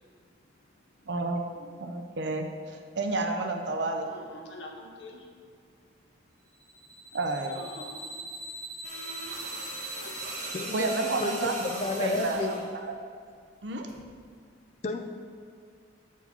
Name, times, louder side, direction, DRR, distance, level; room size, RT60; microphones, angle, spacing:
voice 1, 1.1-1.4 1.8-4.1 7.1-7.6 10.7-12.9 13.6-13.9, right 2 dB, 65° right, 4 dB, 0.6 m, -31 dB
voice 2, 4.0-5.3 7.5-8.1 9.7-10.1, left 2 dB, 65° left, 1 dB, 0.9 m, -45 dB
sound 1, 6.6-12.6, right 1 dB, 10° left, 1.0 m, -42 dB
sound 2, 8.8-12.7 13.9-14.1, right 2 dB, 40° right, 1.3 m, -40 dB
voice 3, 10.5-10.9 11.2-12.6 14.8-15.0, left 2 dB, 35° left, 5 dB, 0.5 m, -31 dB
6.9 x 4.6 x 4.3 m, 2.2 s
head